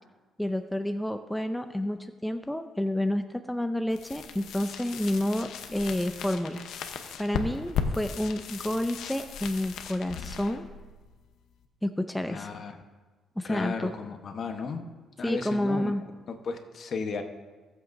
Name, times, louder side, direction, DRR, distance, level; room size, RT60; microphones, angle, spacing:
voice 1, 0.4-6.6 7.2-10.6 11.8-12.5 13.4-13.9 15.2-16.0, left 1 dB, 5° left, 7 dB, 0.5 m, -29 dB
sound 1, 3.9-11.7, left 6 dB, 80° left, 0.8 m, -37 dB
voice 2, 12.3-12.8 13.4-14.9 15.2-15.9 16.3-17.2, left 5 dB, 55° left, 5 dB, 1.1 m, -34 dB
17.5 x 7.8 x 2.6 m, 1.3 s
cardioid pair, 90°, 0 cm